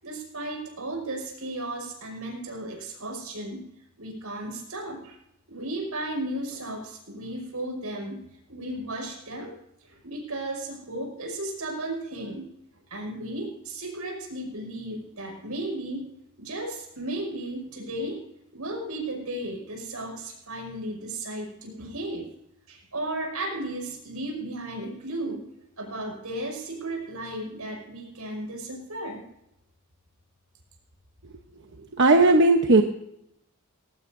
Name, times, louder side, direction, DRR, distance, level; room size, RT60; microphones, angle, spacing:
voice 1, 0.0-3.6 4.0-5.2 5.5-8.2 8.5-9.5 9.8-12.5 12.9-16.1 16.4-18.2 18.5-22.3 22.7-25.4 25.8-29.2, right 1 dB, 90° right, 1 dB, 6.1 m, -34 dB
voice 2, 31.9-32.8, right 2 dB, 55° right, 4 dB, 1.0 m, -17 dB
20.0 x 17.5 x 2.7 m, 0.79 s
head